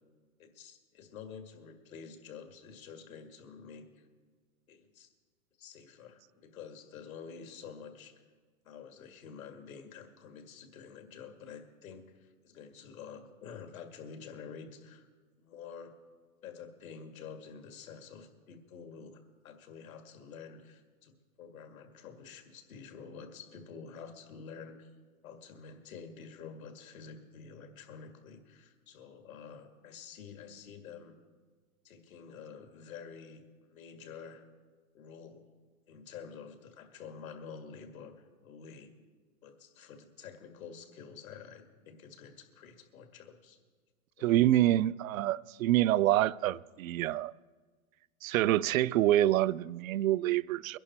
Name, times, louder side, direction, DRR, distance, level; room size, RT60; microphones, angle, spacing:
voice 1, 0.4-4.1 4.7-5.1 5.6-8.2 8.6-15.1 15.4-16.0 16.4-24.9 25.2-31.2 31.8-34.4 34.9-35.4 35.9-38.9 39.4-43.6 44.2-44.5, left 6 dB, 75° left, 2.1 m, -49 dB
voice 2, 44.2-47.3 48.2-50.8, right 14 dB, 70° right, 0.5 m, -26 dB
22.0 x 11.0 x 4.3 m
hypercardioid pair, 125°, 43 cm